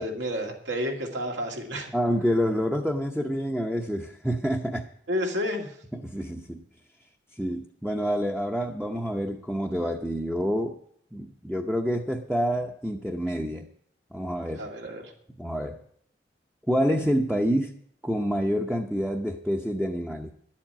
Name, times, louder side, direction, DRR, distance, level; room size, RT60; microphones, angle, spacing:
voice 1, 0.0-1.9 5.1-5.7 14.5-15.1, equal, 80° right, 2 dB, 2.4 m, -30 dB
voice 2, 1.9-4.9 5.9-6.6 7.3-10.8 11.1-13.7 14.1-14.7 15.4-15.8 16.7-17.7 18.0-20.3, equal, 5° right, 2 dB, 0.7 m, -27 dB
11.5 x 7.4 x 8.9 m, 0.65 s
head